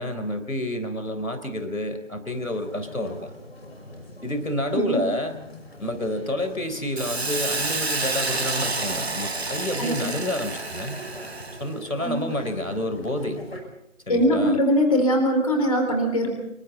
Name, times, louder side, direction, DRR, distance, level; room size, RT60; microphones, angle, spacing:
voice 1, 0.0-3.3 4.2-5.4 5.8-11.0 11.6-13.4 14.1-14.6, left 1 dB, 85° left, 8 dB, 4.0 m, -29 dB
sound 1, 2.3-13.6, left 1 dB, 50° left, 6.0 m, -43 dB
Hiss, 7.0-11.7, right 3 dB, 50° right, 1.1 m, -29 dB
voice 2, 14.1-16.3, equal, 25° left, 3 dB, 3.9 m, -21 dB
27.0 x 23.5 x 4.2 m, 0.80 s
figure-of-eight pair, 165°, 40 cm